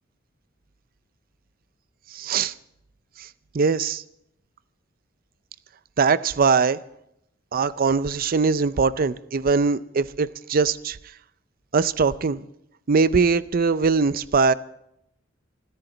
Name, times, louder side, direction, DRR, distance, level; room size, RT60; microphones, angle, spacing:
voice 1, 2.1-2.5 3.2-3.3 3.5-4.0 6.0-6.8 7.5-11.0 11.7-12.4 12.9-14.5, right 4 dB, 50° right, 0.5 m, -21 dB
28.5 x 10.5 x 3.9 m
head